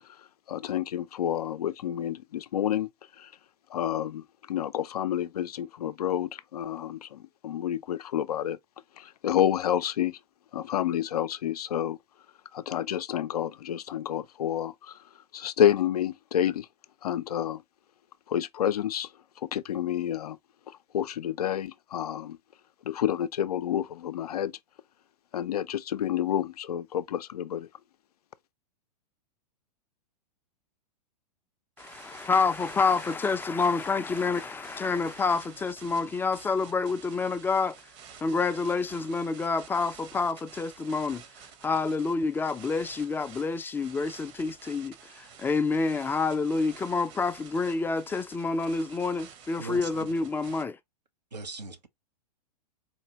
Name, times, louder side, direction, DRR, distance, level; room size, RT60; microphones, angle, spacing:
voice 1, 0.5-2.9 3.2-3.3 3.7-8.6 9.0-10.2 10.5-12.0 12.5-15.0 15.3-16.7 17.0-17.6 18.3-19.1 19.4-20.4 20.7-22.4 22.8-24.5 25.3-27.7, left 10 dB, 65° left, 0.5 m, -29 dB
voice 2, 31.8-37.8 38.2-41.2 41.6-50.8, left 4 dB, 10° left, 0.4 m, -28 dB
sound 1, 31.8-50.6, right 7 dB, 45° right, 1.1 m, -50 dB
voice 3, 49.6-50.1 51.3-51.9, right 4 dB, 80° right, 1.0 m, -39 dB
4.3 x 2.7 x 2.9 m
figure-of-eight pair, 100°, 21 cm